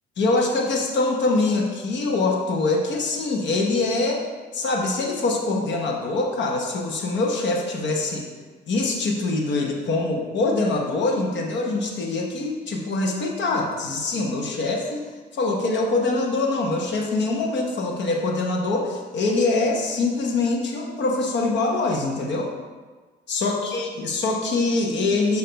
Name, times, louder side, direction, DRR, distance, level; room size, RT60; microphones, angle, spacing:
voice 1, 0.2-4.3 4.5-8.3 8.7-15.0 15.3-22.5 23.3-25.4, left 3 dB, 65° left, 1 dB, 1.1 m, -24 dB
6.6 x 2.8 x 5.1 m, 1.4 s
cardioid pair, 90°, 20 cm